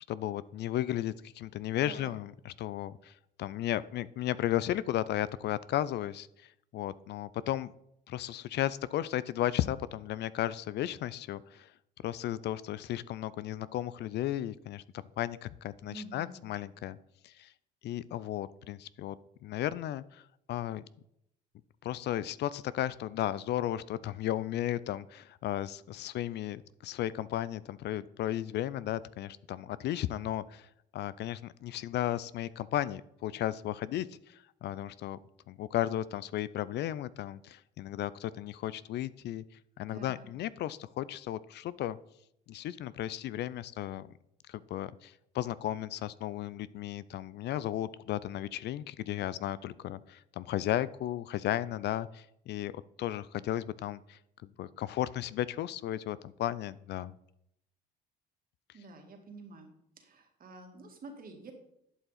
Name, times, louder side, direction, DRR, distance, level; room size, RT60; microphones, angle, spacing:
voice 1, 0.1-7.7 8.1-11.7 12.0-14.8 15.2-17.0 17.2-17.5 17.8-19.2 19.4-20.2 20.5-20.8 21.8-30.7 30.9-35.2 35.5-39.4 39.8-42.0 42.5-44.1 44.5-54.2 54.6-57.1, left 12 dB, 55° left, 18 dB, 0.4 m, -34 dB
voice 2, 1.8-2.1 15.8-16.5 39.9-40.3 58.7-61.5, right 2 dB, 45° right, 3 dB, 2.2 m, -48 dB
11.5 x 5.5 x 4.2 m, 0.75 s
supercardioid pair, 70°, 21 cm